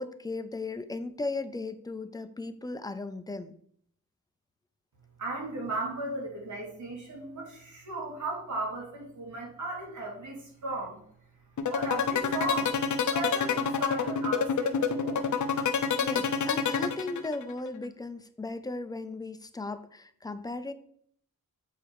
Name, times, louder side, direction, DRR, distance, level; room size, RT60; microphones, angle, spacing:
voice 1, 0.0-3.5 16.0-20.7, left 2 dB, 10° left, 10 dB, 0.5 m, -36 dB
voice 2, 5.2-11.0 11.7-12.7 13.1-15.3, right 2 dB, 60° right, -1 dB, 2.8 m, -36 dB
sound 1, 11.6-17.5, left 7 dB, 55° left, 0.8 m, -27 dB
8.3 x 4.4 x 4.7 m, 0.63 s
wide cardioid pair, 135°, 34 cm